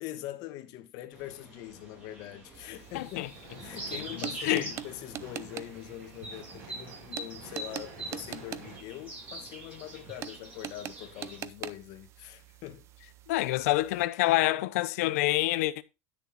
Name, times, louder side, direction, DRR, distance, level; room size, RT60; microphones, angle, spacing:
voice 1, 0.0-3.3 3.6-12.9, left 13 dB, 55° left, 1.4 m, -43 dB
sound 1, 1.1-11.4, right 2 dB, 20° right, 4.8 m, -44 dB
sound 2, 2.5-14.0, right 11 dB, 35° right, 0.6 m, -45 dB
voice 2, 2.9-3.3 4.1-4.7 13.3-15.8, left 17 dB, 80° left, 0.7 m, -27 dB
sound 3, 3.2-8.8, right 3 dB, 55° right, 4.8 m, -50 dB
10.0 x 6.7 x 4.1 m
supercardioid pair, 150°, 8 cm